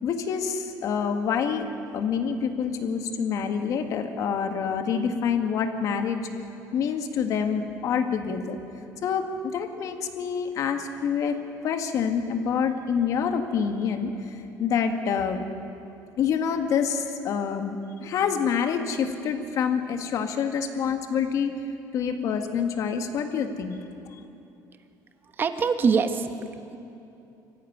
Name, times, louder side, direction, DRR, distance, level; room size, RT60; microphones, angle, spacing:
voice 1, 0.0-1.7 1.9-6.3 6.7-8.6 9.0-11.4 11.6-15.4 16.2-21.5 21.9-23.8, left 6 dB, 50° left, 6 dB, 1.8 m, -27 dB
voice 2, 25.4-26.8, right 5 dB, 30° right, 8 dB, 1.3 m, -24 dB
24.5 x 15.0 x 9.5 m, 2.8 s
cardioid pair, 150°, 7 cm